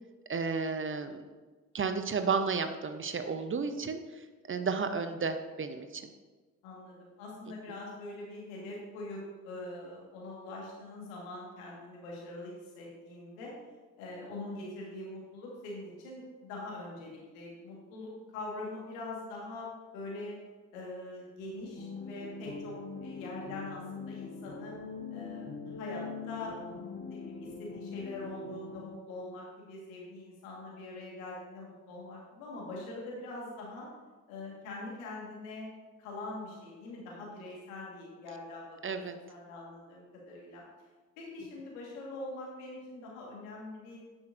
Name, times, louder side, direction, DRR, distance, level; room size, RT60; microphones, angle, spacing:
voice 1, 0.3-1.2 1.7-6.1 7.7-7.8 38.8-39.2, right 5 dB, 30° right, 8 dB, 0.7 m, -33 dB
voice 2, 6.6-13.5 14.0-20.4 20.7-22.8 23.0-24.7 25.1-33.9 34.3-35.7 36.0-39.0 39.3-40.6 41.2-44.0, left 2 dB, 80° left, -3 dB, 1.7 m, -43 dB
sound 1, 21.8-28.9, left 5 dB, 30° left, 1.2 m, -42 dB
9.5 x 6.1 x 2.6 m, 1.3 s
hypercardioid pair, 45°, 40 cm